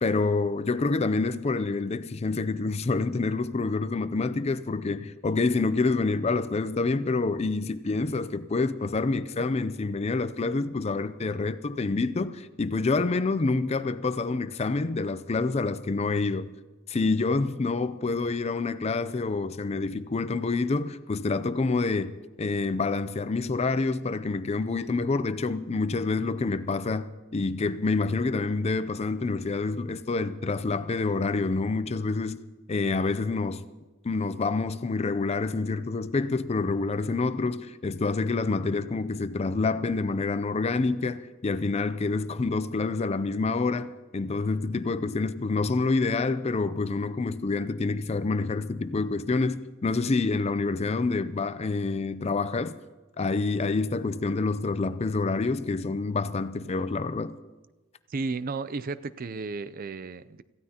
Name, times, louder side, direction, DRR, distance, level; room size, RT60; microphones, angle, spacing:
voice 1, 0.0-16.5 16.9-32.4 32.7-33.6 34.0-52.7 53.2-57.4, left 3 dB, 30° left, 0.4 m, -27 dB
voice 2, 58.1-60.4, right 4 dB, 45° right, 0.5 m, -33 dB
26.0 x 15.0 x 2.9 m
head